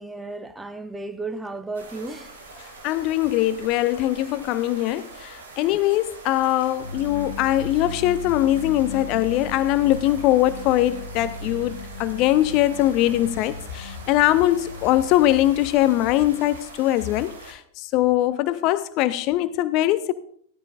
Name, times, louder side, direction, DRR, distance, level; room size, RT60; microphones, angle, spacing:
voice 1, 0.0-2.3, right 3 dB, 5° right, 0.9 m, -34 dB
sound 1, 1.7-17.5, right 3 dB, 70° right, 2.8 m, -43 dB
voice 2, 2.8-20.1, left 14 dB, 40° left, 0.5 m, -22 dB
sound 2, 6.8-16.5, left 1 dB, 60° left, 1.0 m, -37 dB
15.0 x 13.5 x 2.6 m
figure-of-eight pair, 90°, 0 cm